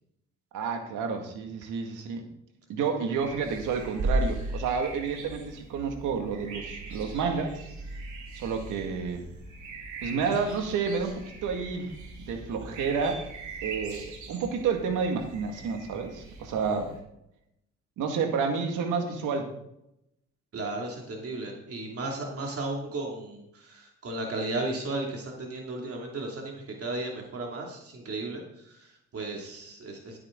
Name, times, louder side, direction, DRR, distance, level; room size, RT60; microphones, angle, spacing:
voice 1, 0.5-2.3 2.7-7.7 8.3-9.3 10.0-13.2 13.6-16.9 18.0-19.5, right 5 dB, 90° right, 4 dB, 2.1 m, -30 dB
sound 1, 3.2-17.0, right 2 dB, 70° right, 3.6 m, -38 dB
voice 2, 20.5-30.2, right 2 dB, 50° right, 0 dB, 2.6 m, -35 dB
13.5 x 8.7 x 3.9 m, 0.79 s
cardioid pair, 90°, 30 cm